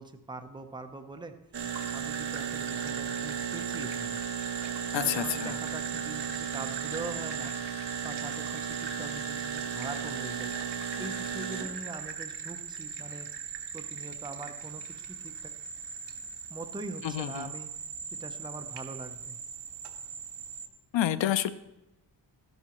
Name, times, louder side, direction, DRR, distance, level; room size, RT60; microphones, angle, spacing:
voice 1, 0.0-1.4 1.9-4.2 4.9-7.6 8.0-10.5 11.0-13.3 13.7-14.8 15.1-15.5 16.5-17.7 18.1-19.4, right 3 dB, 10° right, 6 dB, 0.6 m, -42 dB
sound 1, 1.5-20.7, right 7 dB, 70° right, 1.2 m, -36 dB
voice 2, 4.9-5.6 17.0-17.5 20.9-21.5, left 11 dB, 85° left, 14 dB, 0.6 m, -29 dB
12.5 x 10.5 x 3.0 m, 0.97 s
wide cardioid pair, 150°, 43 cm